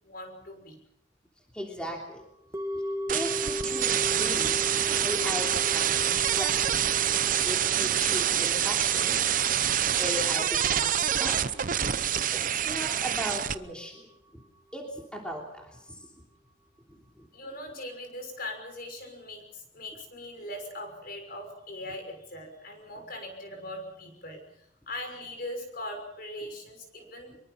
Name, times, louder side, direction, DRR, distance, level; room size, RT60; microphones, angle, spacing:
voice 1, 0.0-0.8 17.3-27.4, left 1 dB, 50° left, 4 dB, 6.0 m, -40 dB
voice 2, 1.5-2.2 2.7-2.8 3.1-4.7 5.0-6.5 7.4-9.2 10.0-11.5 12.3-14.1 14.3-14.4 14.7-16.1 16.9-17.3, equal, 5° left, 0 dB, 3.2 m, -37 dB
sound 1, 2.5-12.8 13.1-13.2, left 1 dB, 15° right, 2.0 m, -38 dB
sound 2, 3.1-13.5, right 10 dB, 45° right, 0.8 m, -26 dB
24.0 x 23.0 x 5.8 m, 0.77 s
head